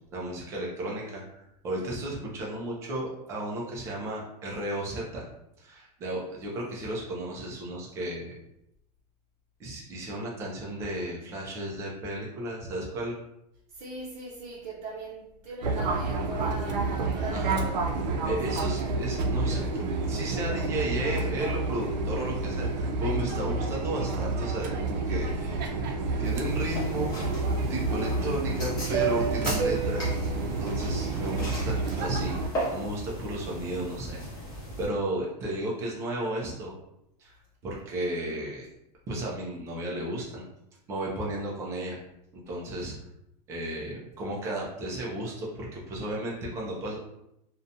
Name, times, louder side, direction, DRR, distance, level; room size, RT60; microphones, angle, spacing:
voice 1, 0.1-5.2 5.6-8.4 9.6-13.2 17.3-17.6 18.2-19.6 20.1-25.8 26.2-27.2 27.7-30.1 30.4-34.2 34.8-36.7 37.2-37.3 37.6-38.7 39.1-40.4 40.9-42.0 42.3-43.0 43.5-47.0, right 1 dB, 15° right, -3 dB, 0.3 m, -34 dB
voice 2, 13.7-17.8 18.5-18.7, right 1 dB, 50° right, -8 dB, 0.7 m, -39 dB
Fixed-wing aircraft airplane, 15.6-32.5, right 3 dB, 85° right, 0.5 m, -29 dB
sound 1, 26.2-34.9, equal, 20° left, 0.7 m, -37 dB
2.5 x 2.1 x 2.6 m, 0.82 s
supercardioid pair, 170°, 21 cm